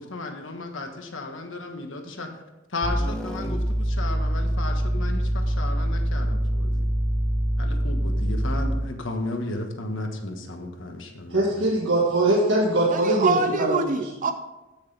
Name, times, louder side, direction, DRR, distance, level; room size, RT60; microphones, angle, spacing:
voice 1, 0.0-2.3 2.7-6.9 7.6-11.5 11.8-11.9, left 2 dB, 70° left, 4 dB, 1.4 m, -34 dB
sound 1, 2.8-9.0, equal, 5° left, 0.6 m, -25 dB
voice 2, 11.3-13.8, right 2 dB, 70° right, -4 dB, 1.7 m, -21 dB
voice 3, 12.9-14.3, right 4 dB, 40° right, 8 dB, 0.5 m, -25 dB
15.0 x 6.5 x 3.4 m, 1.1 s
head